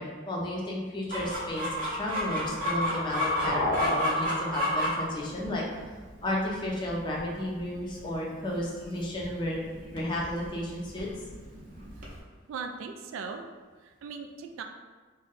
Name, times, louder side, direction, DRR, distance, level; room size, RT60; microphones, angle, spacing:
voice 1, 0.0-5.6 6.2-9.6 9.9-11.1, left 1 dB, 25° left, -3 dB, 0.5 m, -33 dB
Chicken rooster, 1.1-12.2, equal, 45° right, 0.6 m, -33 dB
sound 1, 2.0-5.9, left 1 dB, 75° left, 0.5 m, -34 dB
voice 2, 12.5-13.5 13.8-14.6, right 5 dB, 85° right, 5 dB, 0.3 m, -38 dB
2.6 x 2.2 x 3.8 m, 1.4 s
head